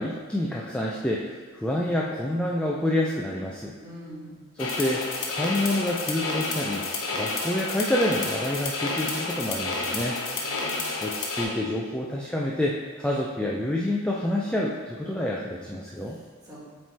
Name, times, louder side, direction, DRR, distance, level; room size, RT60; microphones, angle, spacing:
voice 1, 0.0-3.8 4.6-6.9 7.1-10.2 11.0-16.2, left 1 dB, 5° left, -3 dB, 0.3 m, -28 dB
voice 2, 3.8-4.3 10.3-10.9 16.0-16.6, equal, 15° right, -7 dB, 1.5 m, -44 dB
sound 1, 4.6-11.4, left 3 dB, 65° left, 0.9 m, -30 dB
7.6 x 3.2 x 4.1 m, 1.5 s
head